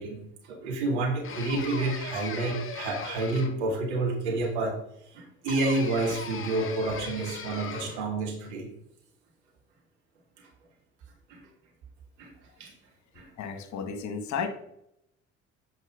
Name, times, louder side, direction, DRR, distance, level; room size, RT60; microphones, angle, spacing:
voice 1, 0.0-4.8 5.1-8.7 10.4-10.5 11.3-11.4 12.2-12.3 12.6-12.8 13.2-13.3, right 2 dB, 80° right, 0 dB, 2.2 m, -29 dB
sound 1, 1.2-3.8 5.5-8.1, left 6 dB, 40° left, 1.4 m, -39 dB
voice 2, 13.4-14.5, left 6 dB, 55° left, 7 dB, 1.5 m, -33 dB
8.1 x 5.2 x 5.2 m, 0.78 s
hypercardioid pair, 55°, 34 cm